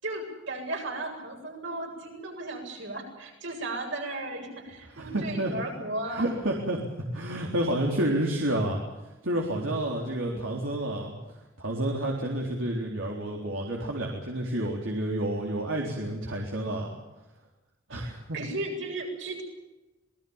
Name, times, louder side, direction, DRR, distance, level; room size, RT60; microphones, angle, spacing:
voice 1, 0.0-6.3 9.9-10.5 17.9-19.4, right 2 dB, 70° right, 2 dB, 7.9 m, -36 dB
voice 2, 4.9-5.5 6.1-6.8 7.1-8.8 9.2-11.1 11.6-16.9 17.9-18.4, right 1 dB, 85° right, -1 dB, 3.9 m, -29 dB
26.5 x 20.0 x 7.2 m, 1.0 s
head